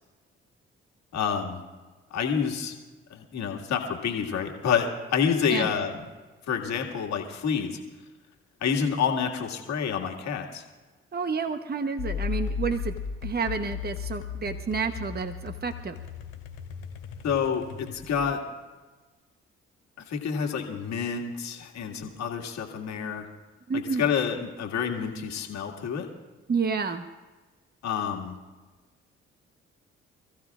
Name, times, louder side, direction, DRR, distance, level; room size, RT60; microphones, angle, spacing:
voice 1, 1.1-1.6 2.1-2.7 3.1-5.9 6.5-7.8 8.6-10.6 17.2-18.4 20.1-23.3 23.7-26.1 27.8-28.3, left 7 dB, 65° left, 2 dB, 2.1 m, -28 dB
voice 2, 11.1-12.9 13.2-16.0 23.7-24.0 26.5-27.0, right 5 dB, 35° right, 8 dB, 1.0 m, -29 dB
sound 1, 12.0-18.3, left 6 dB, 85° left, 2.7 m, -35 dB
27.5 x 15.0 x 2.5 m, 1.3 s
hypercardioid pair, 45°, 29 cm